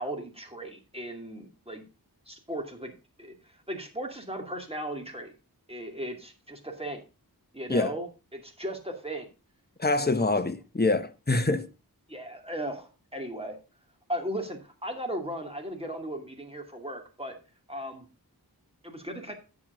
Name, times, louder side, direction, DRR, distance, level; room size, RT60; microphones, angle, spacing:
voice 1, 0.0-1.8 2.3-2.9 3.2-5.3 5.7-7.0 7.5-9.3 10.2-10.3 12.1-13.6 14.1-17.4 17.7-18.1 18.8-19.3, right 1 dB, 15° right, 2.5 m, -37 dB
voice 2, 9.8-11.7, left 2 dB, 25° left, 1.0 m, -25 dB
9.7 x 7.6 x 3.8 m
wide cardioid pair, 45°, 38 cm